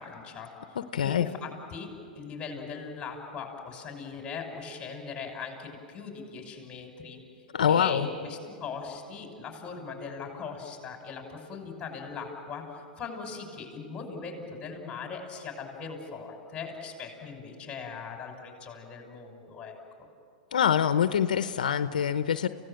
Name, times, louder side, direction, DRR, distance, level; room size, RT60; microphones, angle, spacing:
voice 1, 0.0-1.9 2.1-7.2 7.7-12.6 13.0-19.7, left 5 dB, 20° left, 2 dB, 6.2 m, -40 dB
voice 2, 0.8-1.3 7.5-8.1 20.5-22.5, left 8 dB, 85° left, 11 dB, 0.8 m, -25 dB
28.5 x 17.0 x 9.0 m, 2.3 s
hypercardioid pair, 125°, 4 cm